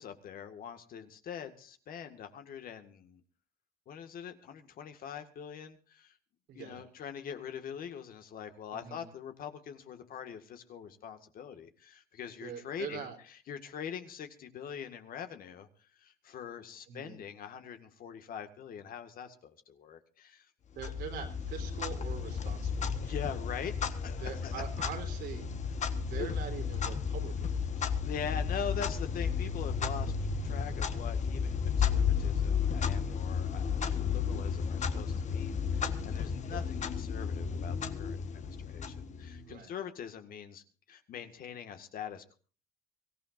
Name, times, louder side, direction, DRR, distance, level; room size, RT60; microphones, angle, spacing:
voice 1, 0.0-3.2 3.9-6.1 6.5-15.7 16.0-20.5 23.0-24.6 26.2-26.3 28.0-30.1 30.4-42.4, left 8 dB, 60° left, 8 dB, 2.0 m, -43 dB
voice 2, 6.5-6.8 8.7-9.0 12.4-13.2 16.9-17.2 20.7-23.1 24.2-25.5 25.9-28.1 36.5-36.7 39.4-39.7, right 8 dB, 80° right, 3 dB, 3.7 m, -43 dB
Clock, 20.8-39.5, left 6 dB, 45° left, 1.5 m, -33 dB
24.0 x 15.0 x 2.7 m, 0.38 s
cardioid pair, 110°, 17 cm